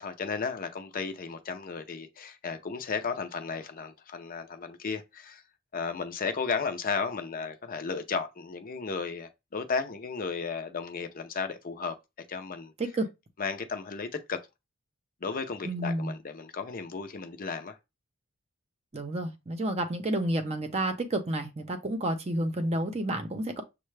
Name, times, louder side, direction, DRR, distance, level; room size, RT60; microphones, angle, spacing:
voice 1, 0.0-5.4 5.7-12.0 12.3-12.7 13.4-14.4 15.2-17.8, left 5 dB, 45° left, 0.6 m, -34 dB
voice 2, 15.6-16.1 18.9-23.6, right 1 dB, 30° right, 0.7 m, -30 dB
6.5 x 2.2 x 3.2 m
head